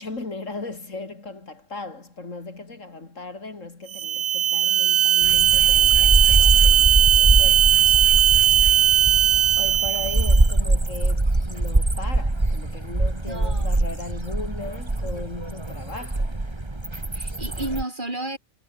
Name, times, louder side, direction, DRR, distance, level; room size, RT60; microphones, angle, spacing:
voice 1, 0.0-8.2 9.6-16.4, left 3 dB, 70° left, 3.8 m, -37 dB
sound 1, 3.9-10.5, right 11 dB, 85° right, 1.3 m, -18 dB
sound 2, 5.2-17.8, right 2 dB, 20° right, 2.0 m, -23 dB
voice 2, 13.3-13.7 17.1-18.4, right 2 dB, 35° right, 4.0 m, -32 dB
omnidirectional pair, 1.4 m